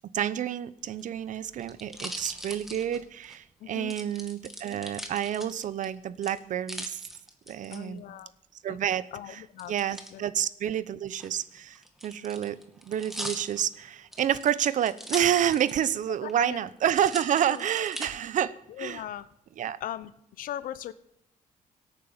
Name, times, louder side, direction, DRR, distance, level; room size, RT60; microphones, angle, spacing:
voice 1, 0.1-7.0 7.5-8.0 8.6-9.4 9.7-12.6 12.9-19.0 19.6-19.8, right 10 dB, 65° right, 17 dB, 0.9 m, -29 dB
sound 1, 0.8-3.4 3.9-5.9 6.2-7.8 9.6-10.1 11.1-16.0 16.3-16.4 16.9-18.1 18.7-19.2, equal, ahead, 2.3 m, -41 dB
voice 2, 3.6-3.9 7.7-8.3 8.7-8.8 9.1-9.7 10.1-10.2 16.2-16.6 17.5-17.7 18.8-19.3 19.8-20.1 20.4-20.9, left 11 dB, 85° left, 15 dB, 1.0 m, -38 dB
17.5 x 9.3 x 7.3 m, 0.78 s
cardioid pair, 125°, 14 cm